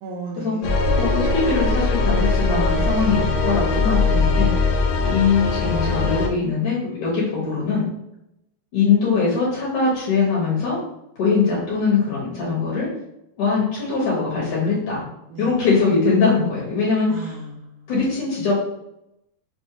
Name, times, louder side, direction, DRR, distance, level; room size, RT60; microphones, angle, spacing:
voice 1, 0.0-0.9 15.3-15.5 17.1-17.9, right 3 dB, 85° right, -2 dB, 1.7 m, -35 dB
sound 1, 0.6-6.3, left 3 dB, 90° left, 1.7 m, -20 dB
voice 2, 0.9-4.5 5.0-7.8 8.7-10.8 11.2-12.9 13.4-15.0 15.4-17.3 17.9-18.5, left 4 dB, 65° left, -6 dB, 2.4 m, -21 dB
5.9 x 2.1 x 2.9 m, 0.80 s
omnidirectional pair, 4.1 m